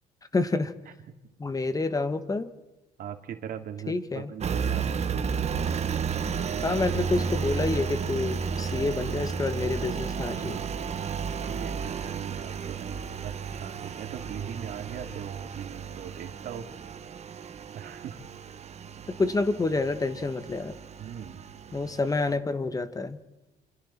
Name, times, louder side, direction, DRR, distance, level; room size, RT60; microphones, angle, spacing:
voice 1, 0.3-0.7 1.4-2.5 3.9-4.3 6.6-10.6 19.2-20.7 21.7-23.2, left 3 dB, 20° left, 11 dB, 1.4 m, -28 dB
voice 2, 3.0-5.2 10.3-10.7 11.4-16.7 17.7-18.2 21.0-21.5, right 9 dB, 60° right, 6 dB, 2.5 m, -40 dB
Engine, 4.4-22.4, right 6 dB, 40° right, 1.4 m, -33 dB
28.5 x 26.5 x 4.4 m, 1.0 s
cardioid pair, 110°, 17 cm